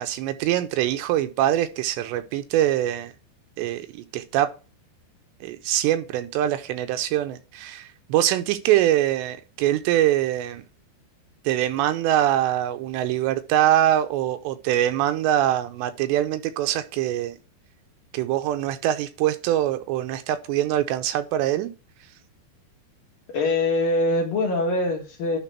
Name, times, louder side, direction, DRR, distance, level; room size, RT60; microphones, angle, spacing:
voice 1, 0.0-3.1 3.6-4.5 5.4-10.6 11.5-17.4 18.1-21.7, right 12 dB, 85° right, 2.7 m, -23 dB
voice 2, 23.3-25.4, left 2 dB, 60° left, 2.8 m, -23 dB
11.0 x 4.0 x 4.4 m
omnidirectional pair, 5.2 m